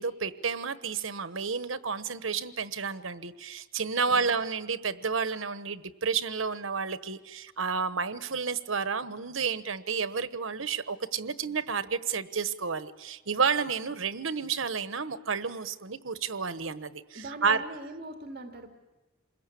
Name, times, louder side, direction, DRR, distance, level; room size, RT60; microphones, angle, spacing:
voice 1, 0.0-17.7, right 5 dB, 80° right, 12 dB, 1.2 m, -31 dB
voice 2, 17.1-18.9, right 2 dB, 50° right, 3 dB, 2.2 m, -41 dB
28.0 x 21.5 x 8.5 m, 1.1 s
head